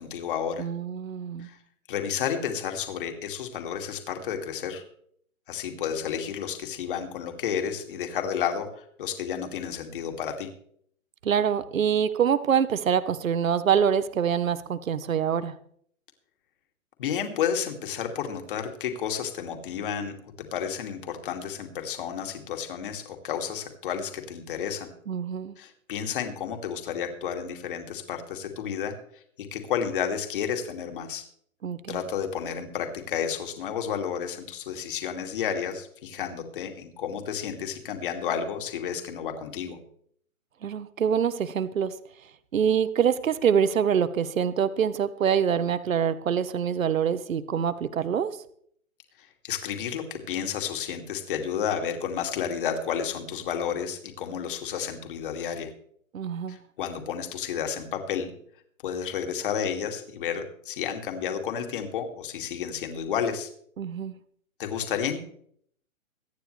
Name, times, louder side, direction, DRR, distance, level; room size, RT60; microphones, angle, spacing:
voice 1, 0.0-0.7 1.4-1.6 1.9-4.8 5.5-10.5 17.0-20.1 20.5-24.9 25.6-31.2 31.9-39.8 49.4-55.7 56.5-58.3 58.8-63.5 64.6-65.2, left 8 dB, 40° left, 4 dB, 2.4 m, -31 dB
voice 2, 0.6-1.5 11.2-15.6 25.1-25.5 31.6-32.0 40.6-41.9 42.5-48.3 56.1-56.6 63.8-64.1, right 8 dB, 70° right, 14 dB, 1.2 m, -25 dB
23.0 x 9.3 x 3.3 m, 0.65 s
hypercardioid pair, 155°, 42 cm